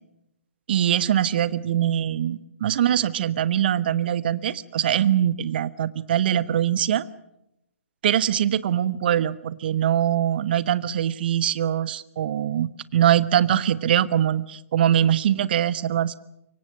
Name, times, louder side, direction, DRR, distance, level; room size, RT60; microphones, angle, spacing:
voice 1, 0.7-7.1 8.0-16.2, right 10 dB, 40° right, 17 dB, 1.0 m, -22 dB
26.0 x 24.0 x 6.4 m, 0.85 s
figure-of-eight pair, 130°, 8 cm